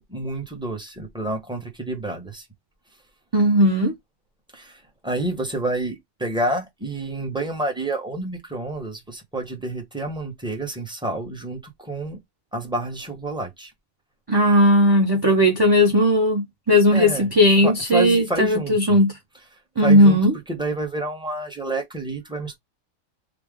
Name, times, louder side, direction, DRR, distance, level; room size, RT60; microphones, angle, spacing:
voice 1, 0.0-2.4 4.5-12.2 12.5-13.7 16.9-17.3 17.6-19.0 19.8-20.2 20.5-22.6, right 2 dB, 5° right, 0.9 m, -29 dB
voice 2, 3.3-3.9 14.3-19.1 19.8-20.3, equal, 25° right, 0.5 m, -17 dB
3.4 x 2.3 x 3.5 m
omnidirectional pair, 1.4 m